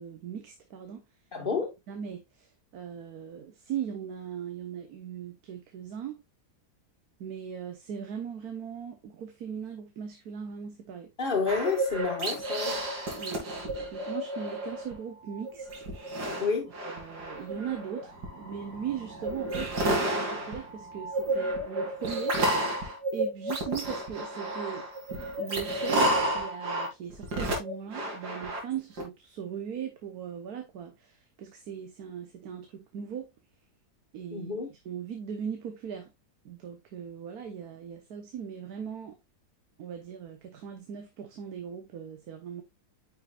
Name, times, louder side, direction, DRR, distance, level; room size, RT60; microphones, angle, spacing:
voice 1, 0.0-1.3 1.9-6.2 7.2-11.1 13.1-13.5 13.9-15.9 16.8-24.9 25.4-33.3 34.1-36.1 36.4-39.2 39.8-42.6, right 8 dB, 70° right, 1.4 m, -39 dB
voice 2, 1.3-1.7 11.2-12.8 16.4-16.7 34.3-34.7, left 5 dB, 35° left, 1.8 m, -29 dB
sound 1, 11.5-14.9 15.3-29.0, right 1 dB, 85° right, 2.8 m, -31 dB
9.3 x 5.5 x 2.4 m
omnidirectional pair, 1.7 m